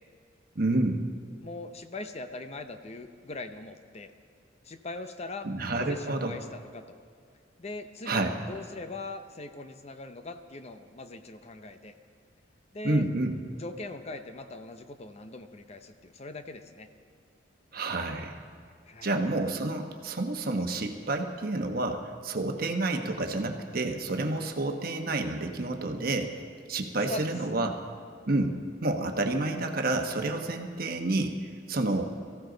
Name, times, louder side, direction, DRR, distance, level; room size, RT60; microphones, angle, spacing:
voice 1, 0.5-1.0 5.4-6.4 8.1-8.3 12.8-13.4 17.7-18.4 19.0-26.3 26.7-27.7 28.3-28.6 28.8-31.3 31.7-32.0, right 2 dB, 50° right, 4 dB, 1.1 m, -29 dB
voice 2, 1.4-4.1 4.6-7.0 7.6-11.9 12.7-13.1 13.5-16.9 18.9-19.1 27.1-27.3, left 2 dB, 35° left, 8 dB, 0.7 m, -41 dB
23.0 x 14.5 x 3.9 m, 2.1 s
head